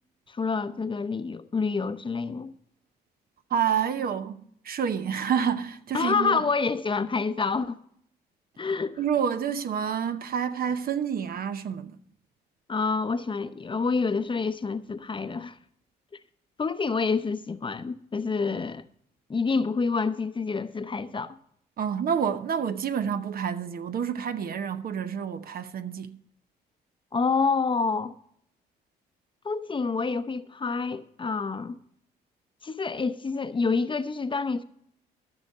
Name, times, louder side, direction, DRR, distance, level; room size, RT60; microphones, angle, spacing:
voice 1, 0.3-2.5 5.9-7.8 8.6-9.0 12.7-15.6 16.6-18.8 19.3-21.4 27.1-28.1 29.4-31.8 32.6-34.6, left 4 dB, 25° left, 0.8 m, -27 dB
voice 2, 3.5-6.4 9.0-12.0 21.8-26.2, right 7 dB, 55° right, 0.9 m, -28 dB
14.0 x 6.4 x 5.4 m
cardioid pair, 75°, 18 cm